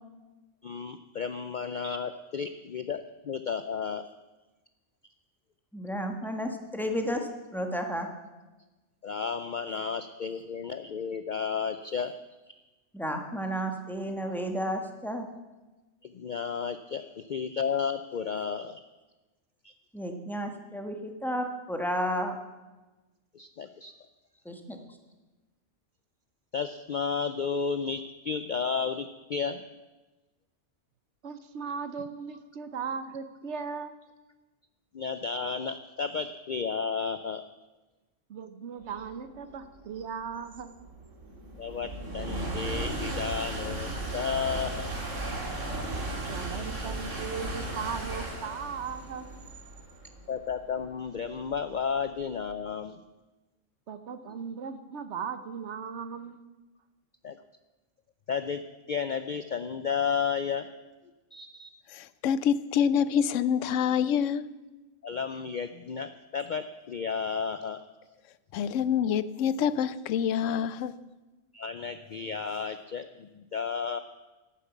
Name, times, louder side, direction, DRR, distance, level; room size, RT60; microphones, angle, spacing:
voice 1, 0.6-4.0 9.0-12.1 16.0-18.8 19.6-19.7 23.3-23.9 26.5-29.6 34.9-37.4 41.6-44.9 50.3-53.0 57.2-57.4 58.3-58.6 58.9-60.7 61.3-61.7 65.0-67.8 71.5-74.0, left 6 dB, 55° left, 10 dB, 0.5 m, -32 dB
voice 2, 5.7-8.1 12.9-15.3 19.9-22.4 24.4-24.8, equal, ahead, 4 dB, 1.3 m, -32 dB
voice 3, 31.2-34.0 38.3-40.7 46.3-49.3 53.9-56.4, right 6 dB, 65° right, 11 dB, 1.1 m, -37 dB
sound 1, 39.2-52.5, right 2 dB, 85° right, 2.3 m, -36 dB
voice 4, 62.0-64.5 68.5-70.9, left 8 dB, 85° left, 16 dB, 0.9 m, -26 dB
12.0 x 9.1 x 7.3 m, 1.1 s
omnidirectional pair, 1.3 m